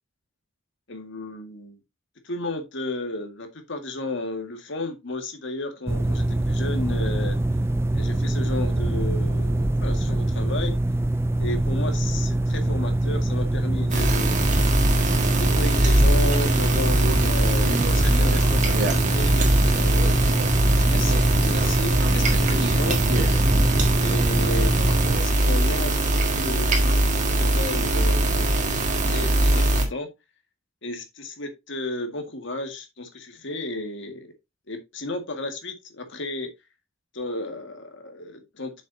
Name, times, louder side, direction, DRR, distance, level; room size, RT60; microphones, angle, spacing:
voice 1, 0.9-1.8 2.2-7.4 7.9-10.7 11.4-14.4 15.4-20.1 20.8-23.0 24.0-27.0 27.3-30.1 30.8-34.3 34.7-36.5 37.1-38.8, left 2 dB, 65° left, 1.8 m, -33 dB
sound 1, 5.9-25.2, right 1 dB, 15° right, 0.4 m, -24 dB
sound 2, 13.9-29.9, right 1 dB, 40° right, 1.6 m, -22 dB
Conversation, 16.9-25.8, right 1 dB, 60° right, 1.9 m, -35 dB
8.0 x 6.3 x 2.7 m
head